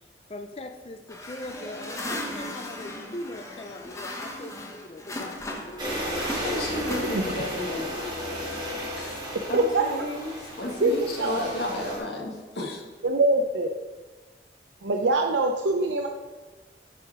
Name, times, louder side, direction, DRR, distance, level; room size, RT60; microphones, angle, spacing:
voice 1, 0.3-6.5, left 1 dB, 30° left, 6 dB, 0.4 m, -40 dB
sound 1, 1.1-5.8 6.1-7.6, left 1 dB, 15° left, 0.8 m, -37 dB
sound 2, 5.8-12.0, equal, 25° right, 2.7 m, -34 dB
voice 2, 6.4-8.7 9.0-9.2 9.5-12.8, left 1 dB, 65° left, 0 dB, 1.7 m, -33 dB
voice 3, 9.5-9.9 10.8-11.5 13.0-13.8 14.8-16.1, right 2 dB, 80° right, 3 dB, 0.6 m, -24 dB
9.9 x 4.9 x 4.8 m, 1.3 s
head